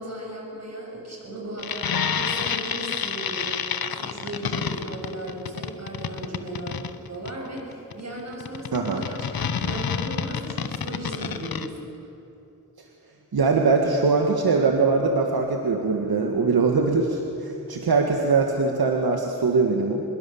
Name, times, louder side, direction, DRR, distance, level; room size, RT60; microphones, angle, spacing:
voice 1, 0.0-12.1, right 1 dB, 45° right, -1 dB, 7.3 m, -36 dB
sound 1, 1.6-11.7, left 7 dB, 80° left, 1.1 m, -29 dB
voice 2, 8.7-9.0 13.3-20.0, right 4 dB, 85° right, 2 dB, 1.9 m, -22 dB
25.5 x 21.5 x 7.3 m, 3.0 s
wide cardioid pair, 90°, 36 cm